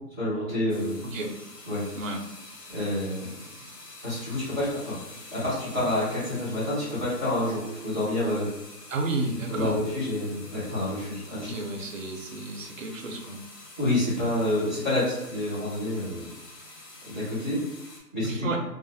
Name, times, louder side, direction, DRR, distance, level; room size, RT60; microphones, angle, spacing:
voice 1, 0.2-1.0 1.7-1.8 2.7-3.3 4.0-5.0 5.3-8.5 9.5-11.5 13.8-16.2 17.1-17.6 18.1-18.5, left 1 dB, 10° left, -14 dB, 0.6 m, -28 dB
sound 1, 0.7-18.0, left 2 dB, 75° left, 1.2 m, -47 dB
voice 2, 8.9-9.8 11.3-13.4 18.2-18.6, right 2 dB, 55° right, 2 dB, 0.5 m, -32 dB
2.3 x 2.0 x 2.6 m, 0.93 s
hypercardioid pair, 155°, 48 cm